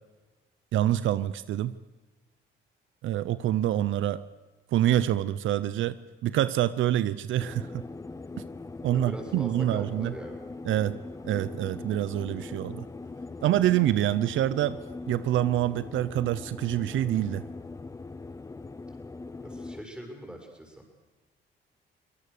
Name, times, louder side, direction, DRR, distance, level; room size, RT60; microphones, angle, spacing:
voice 1, 0.7-1.7 3.0-4.2 4.7-6.0 6.2-7.8 8.8-10.1 10.6-11.0 11.2-12.9 13.4-14.8 15.1-17.5, right 12 dB, 80° right, 16 dB, 0.7 m, -26 dB
sound 1, 7.4-19.8, left 3 dB, 15° left, 0.7 m, -41 dB
voice 2, 8.9-10.4 19.4-20.8, right 1 dB, 5° right, 1 dB, 6.6 m, -42 dB
24.5 x 19.0 x 6.7 m, 1.2 s
cardioid pair, 90°, 20 cm